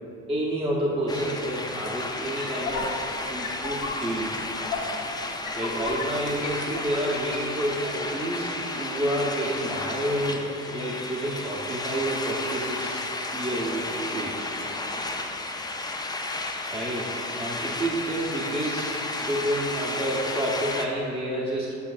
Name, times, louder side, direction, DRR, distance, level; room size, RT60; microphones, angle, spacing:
voice 1, 0.3-4.3 5.5-13.1 13.3-14.5 16.7-18.9 19.2-21.8, right 1 dB, 20° right, -4 dB, 0.8 m, -29 dB
sound 1, 1.1-20.9, left 2 dB, 15° left, 0.4 m, -33 dB
sound 2, 1.5-7.5, left 3 dB, 80° left, 1.0 m, -35 dB
8.2 x 5.3 x 2.4 m, 2.7 s
cardioid pair, 90°, 30 cm